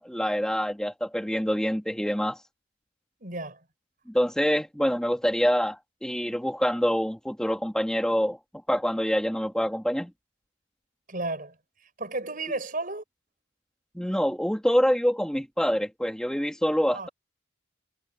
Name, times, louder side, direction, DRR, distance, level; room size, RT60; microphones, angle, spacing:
voice 1, 0.0-2.4 4.1-8.4 8.7-10.1 14.0-17.1, equal, 5° left, 2.2 m, -26 dB
voice 2, 3.2-3.6 11.1-11.6 12.0-13.0 16.9-17.1, right 2 dB, 45° right, 6.0 m, -33 dB
head